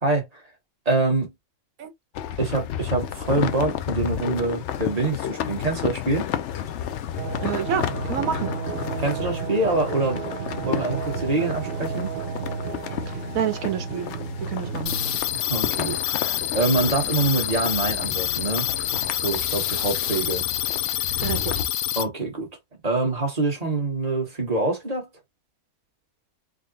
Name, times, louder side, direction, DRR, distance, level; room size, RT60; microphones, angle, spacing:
voice 1, 0.0-0.4 0.8-1.3 2.4-6.3 9.0-10.2 10.6-12.1 15.3-20.4 22.0-22.5 22.8-25.1, right 2 dB, 30° right, 1.2 m, -25 dB
sound 1, 2.1-21.6, left 10 dB, 65° left, 0.7 m, -32 dB
sound 2, 7.2-15.2, right 6 dB, 55° right, 0.6 m, -32 dB
voice 2, 7.4-8.5 13.1-14.1 14.4-14.9 21.2-21.6, right 8 dB, 75° right, 1.2 m, -28 dB
sound 3, 14.9-22.0, left 12 dB, 90° left, 1.1 m, -27 dB
3.7 x 2.0 x 3.9 m
omnidirectional pair, 1.5 m